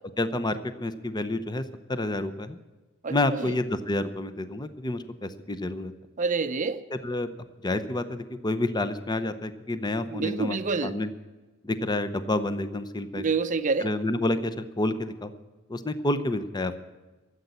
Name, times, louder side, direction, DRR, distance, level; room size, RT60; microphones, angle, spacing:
voice 1, 0.2-1.6 1.9-2.6 3.1-5.9 6.9-7.3 7.6-10.6 10.8-11.1 11.6-13.3 13.8-15.3 15.7-16.8, left 2 dB, 20° left, 0.7 m, -29 dB
voice 2, 3.0-3.5 6.2-6.8 10.1-11.0 13.2-13.9, right 4 dB, 35° right, 0.6 m, -28 dB
13.5 x 8.0 x 9.7 m
head